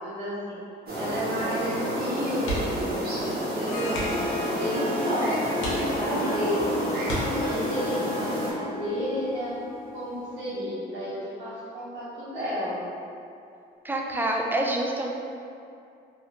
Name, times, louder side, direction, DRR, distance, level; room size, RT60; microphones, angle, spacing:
voice 1, 0.0-0.6 0.9-6.7 7.4-9.5 9.9-12.9, equal, 75° right, -11 dB, 1.1 m, -32 dB
sound 1, 0.9-8.5, equal, 50° right, 1.2 m, -30 dB
sound 2, 2.4-2.9 3.2-3.4 3.9-4.4 5.0-5.1 5.6-6.3 7.0-7.8 9.4-9.7 10.0-10.1, equal, 80° left, 1.0 m, -34 dB
Harp, 3.4-10.5, left 2 dB, 45° left, 0.5 m, -34 dB
voice 2, 13.8-15.1, right 1 dB, 10° right, 0 dB, 0.4 m, -26 dB
3.1 x 2.6 x 2.9 m, 2.5 s
cardioid pair, 90°, 20 cm